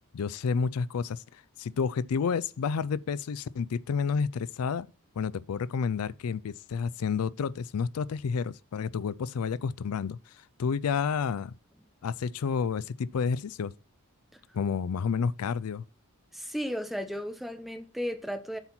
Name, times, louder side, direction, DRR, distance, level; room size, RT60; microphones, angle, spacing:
voice 1, 0.1-4.9 5.2-11.5 12.0-13.7 14.5-15.8, left 6 dB, 75° left, 0.4 m, -30 dB
voice 2, 16.3-18.6, equal, ahead, 0.9 m, -34 dB
7.9 x 4.3 x 5.8 m
head